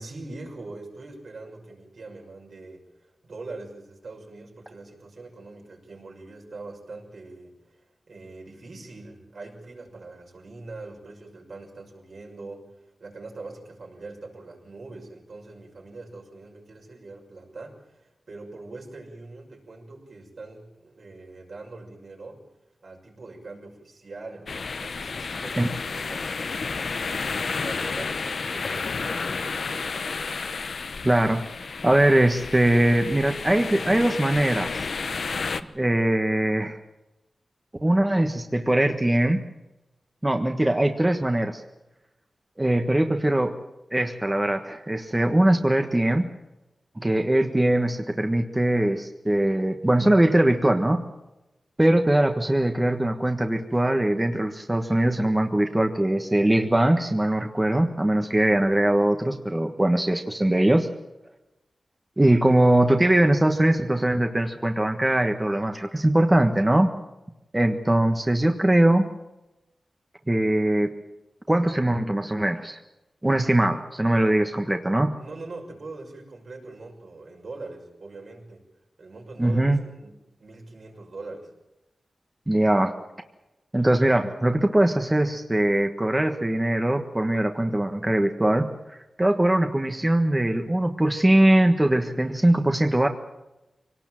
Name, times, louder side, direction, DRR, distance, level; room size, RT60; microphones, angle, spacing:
voice 1, 0.0-22.4 22.8-29.9 62.5-62.6 75.2-78.7 79.0-81.5, right 3 dB, 70° right, 0 dB, 6.1 m, -42 dB
sound 1, 24.5-35.6, left 4 dB, 70° left, 1.0 m, -31 dB
voice 2, 31.0-31.4 31.8-34.8 35.7-36.8 37.8-39.4 40.2-41.6 42.6-43.6 43.9-46.3 47.0-51.1 51.8-60.9 62.2-66.9 67.5-69.1 70.3-70.9 71.5-72.8 73.2-75.1 79.4-79.8 82.5-82.9 83.7-93.1, right 1 dB, 20° right, 5 dB, 1.5 m, -21 dB
24.5 x 18.5 x 7.6 m, 0.99 s
wide cardioid pair, 70°, 0 cm